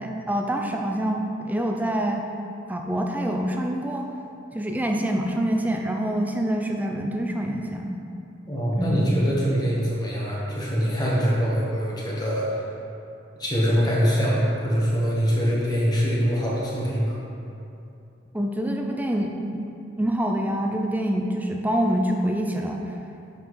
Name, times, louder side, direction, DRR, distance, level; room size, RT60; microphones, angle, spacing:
voice 1, 0.0-2.2 2.7-4.1 4.5-8.0 8.8-9.1 18.3-19.3 20.0-22.8, right 1 dB, 10° right, 2 dB, 0.4 m, -26 dB
voice 2, 8.5-12.5 13.4-17.2, equal, 20° left, -5 dB, 1.2 m, -23 dB
7.0 x 5.8 x 3.2 m, 2.7 s
head